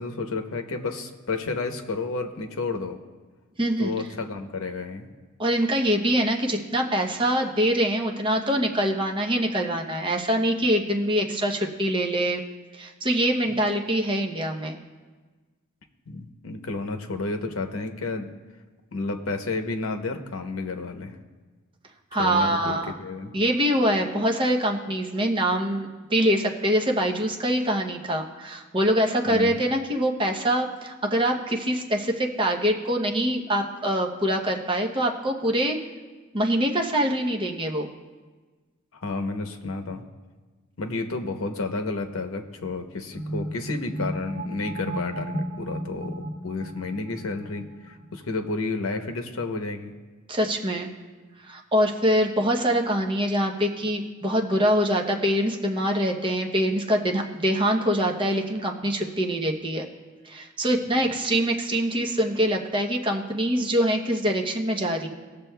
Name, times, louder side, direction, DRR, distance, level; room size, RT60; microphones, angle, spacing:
voice 1, 0.0-3.0 3.8-5.1 13.5-13.6 16.1-18.3 18.9-21.2 22.2-23.3 29.2-29.6 39.0-40.0 40.8-49.9, left 3 dB, 85° left, 5 dB, 0.8 m, -31 dB
voice 2, 3.6-3.9 5.4-12.4 12.7-14.8 22.1-23.0 23.3-35.8 36.3-37.9 50.3-50.9 51.5-59.9 60.2-65.1, equal, 25° right, 1 dB, 0.8 m, -24 dB
sound 1, 43.1-48.4, right 1 dB, 60° right, 2.2 m, -34 dB
20.0 x 6.8 x 2.3 m, 1.4 s
head